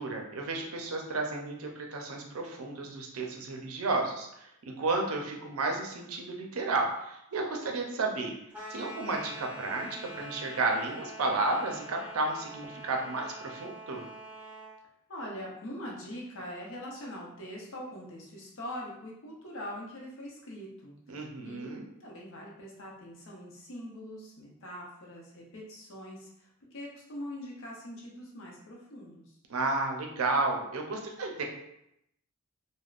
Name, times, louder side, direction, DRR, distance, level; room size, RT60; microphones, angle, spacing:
voice 1, 0.0-8.3 8.7-14.0 21.1-21.8 29.5-31.4, right 3 dB, 75° right, 2 dB, 0.5 m, -32 dB
sound 1, 8.5-14.8, right 1 dB, 5° right, 0.5 m, -45 dB
voice 2, 15.1-21.7 22.0-29.4, equal, 60° left, -2 dB, 0.7 m, -43 dB
3.4 x 2.1 x 2.4 m, 0.79 s
head